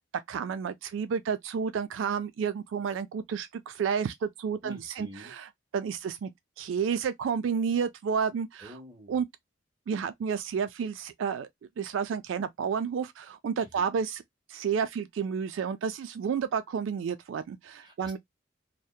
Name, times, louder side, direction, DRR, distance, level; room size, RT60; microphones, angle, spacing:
voice 1, 0.3-6.3 6.6-8.7 9.1-9.3 9.9-11.5 11.8-14.2 14.5-18.2, right 6 dB, 85° right, 0.3 m, -31 dB
voice 2, 4.6-5.3 8.6-9.2 13.6-13.8 17.8-18.2, left 1 dB, 25° right, 1.1 m, -47 dB
2.7 x 2.1 x 2.2 m
head